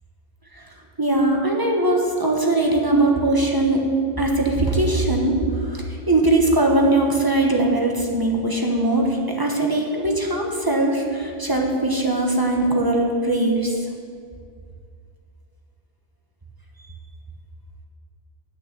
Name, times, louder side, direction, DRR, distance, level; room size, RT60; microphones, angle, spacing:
voice 1, 1.0-3.8 4.2-13.9, right 2 dB, 20° right, 0 dB, 1.0 m, -20 dB
8.5 x 6.6 x 7.3 m, 2.2 s
omnidirectional pair, 1.2 m